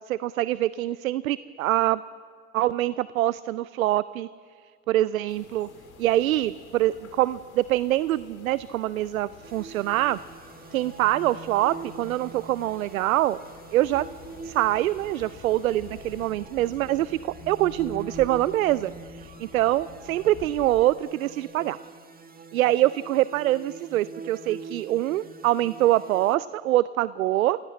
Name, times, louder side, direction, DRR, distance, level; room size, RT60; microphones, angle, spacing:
voice 1, 0.1-2.0 2.5-4.3 4.9-5.7 6.0-10.2 10.7-13.4 13.7-14.1 14.4-21.8 22.5-27.6, right 14 dB, 75° right, 18 dB, 0.6 m, -24 dB
sound 1, 5.3-16.3, left 4 dB, 75° left, 3.1 m, -51 dB
sound 2, 9.4-26.4, right 4 dB, 20° right, 1.9 m, -44 dB
sound 3, 13.8-20.8, left 10 dB, 40° left, 1.5 m, -48 dB
29.0 x 16.5 x 7.6 m, 2.1 s
figure-of-eight pair, 65°, 42 cm